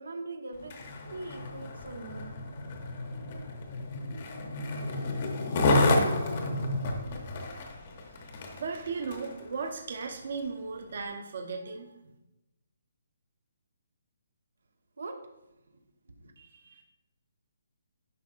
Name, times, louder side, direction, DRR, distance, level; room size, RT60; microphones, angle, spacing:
voice 1, 0.0-2.3 15.0-15.2 16.2-16.3, right 2 dB, 90° right, 5 dB, 1.1 m, -42 dB
Skateboard, 0.6-9.4 10.0-10.1, left 2 dB, 30° left, 0.8 m, -30 dB
voice 2, 8.6-11.9 16.4-16.8, right 4 dB, 45° right, 3 dB, 0.9 m, -36 dB
11.0 x 5.4 x 2.5 m, 0.94 s
hypercardioid pair, 175°, 0 cm